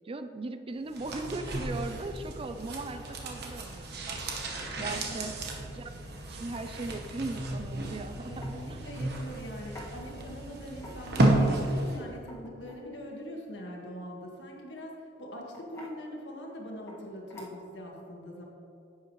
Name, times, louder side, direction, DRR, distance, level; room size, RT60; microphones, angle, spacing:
voice 1, 0.0-4.2 4.8-5.3 5.7-5.9 6.3-8.8, right 2 dB, 30° right, 9 dB, 0.4 m, -38 dB
sound 1, 0.9-12.1 12.4-12.5, right 1 dB, 60° right, 1.1 m, -32 dB
voice 2, 4.8-5.4 8.3-18.5, equal, 75° left, -1 dB, 1.7 m, -43 dB
sound 2, 8.4-8.6 9.8-9.9 10.7-11.3 12.1-12.9 14.5-14.8 15.5-16.0 16.9-17.0 17.3-17.8, left 1 dB, 15° left, 1.8 m, -47 dB
10.5 x 8.4 x 3.1 m, 2.6 s
head